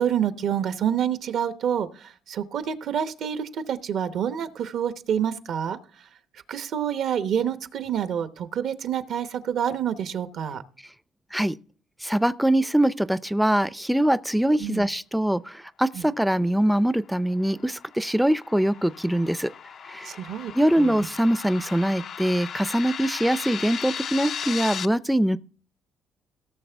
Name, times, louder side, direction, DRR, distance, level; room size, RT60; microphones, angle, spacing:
voice 1, 0.0-5.8 6.5-10.6 14.6-14.9 15.9-16.0 20.0-20.9, right 9 dB, 70° right, 0.9 m, -27 dB
voice 2, 12.0-19.5 19.9-20.1 20.5-25.4, right 1 dB, 5° right, 0.4 m, -23 dB
sound 1, 17.2-24.8, left 7 dB, 60° left, 0.5 m, -36 dB
17.5 x 6.5 x 3.4 m
cardioid pair, 90°, 0 cm